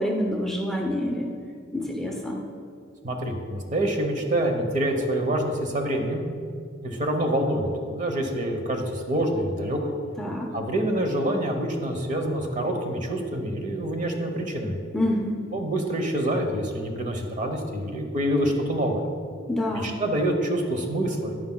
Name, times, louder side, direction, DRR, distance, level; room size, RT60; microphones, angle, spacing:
voice 1, 0.0-1.3 1.7-2.5 10.2-10.5 14.9-15.5 19.5-20.0, left 1 dB, ahead, -1 dB, 0.6 m, -27 dB
voice 2, 3.0-6.2 6.8-9.9 10.5-14.8 15.5-19.0 19.7-21.3, right 1 dB, 40° right, 4 dB, 0.9 m, -26 dB
10.0 x 9.5 x 2.2 m, 2.2 s
head